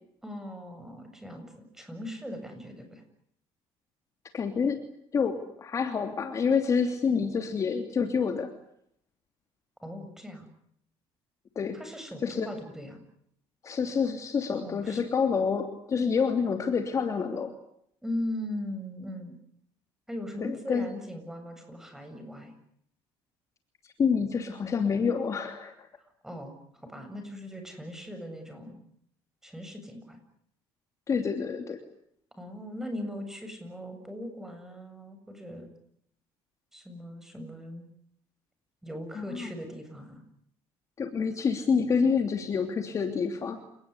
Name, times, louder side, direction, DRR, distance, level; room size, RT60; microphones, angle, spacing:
voice 1, 0.2-3.0 9.8-10.5 11.7-13.0 14.5-15.0 18.0-19.4 20.1-22.5 26.2-28.8 29.4-30.2 32.3-35.7 36.7-37.9 38.8-40.2, left 1 dB, 5° right, 6 dB, 7.8 m, -39 dB
voice 2, 4.3-4.8 5.1-8.5 11.5-11.8 12.2-12.5 13.6-17.5 20.4-20.9 23.8-25.9 31.1-31.8 39.1-39.5 41.0-43.6, left 6 dB, 30° left, 5 dB, 3.0 m, -28 dB
29.5 x 19.0 x 9.9 m, 0.71 s
cardioid pair, 135°, 10 cm